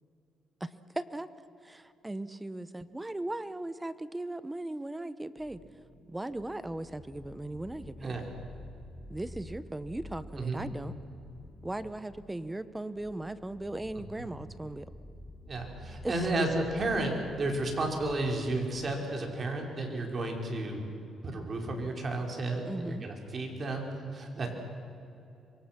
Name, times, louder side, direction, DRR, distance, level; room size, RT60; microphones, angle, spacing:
voice 1, 0.6-1.3 1.6-5.6 6.1-8.1 9.1-11.0 11.6-14.9 16.0-16.3 22.7-23.1, right 1 dB, 15° right, 14 dB, 1.1 m, -38 dB
sound 1, 5.4-19.3, left 1 dB, 5° left, 4.2 m, -50 dB
voice 2, 10.4-10.7 14.0-14.2 15.4-20.9 21.2-24.5, right 2 dB, 40° right, 1 dB, 5.0 m, -32 dB
26.5 x 23.5 x 6.1 m, 2.7 s
cardioid pair, 90°, 0 cm